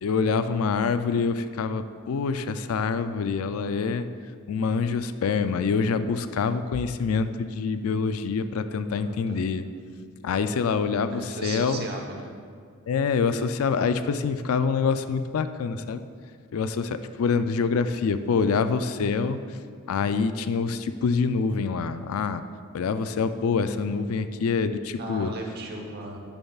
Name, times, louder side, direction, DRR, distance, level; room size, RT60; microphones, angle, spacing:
voice 1, 0.0-4.0 4.5-9.6 10.2-11.9 12.9-16.0 16.5-19.6 19.9-22.4 22.7-25.3, left 5 dB, 80° left, 11 dB, 0.4 m, -26 dB
voice 2, 8.9-9.4 11.1-12.3 23.8-24.2 25.0-26.2, right 2 dB, 50° right, 1 dB, 1.0 m, -37 dB
11.0 x 7.0 x 2.4 m, 2.1 s
head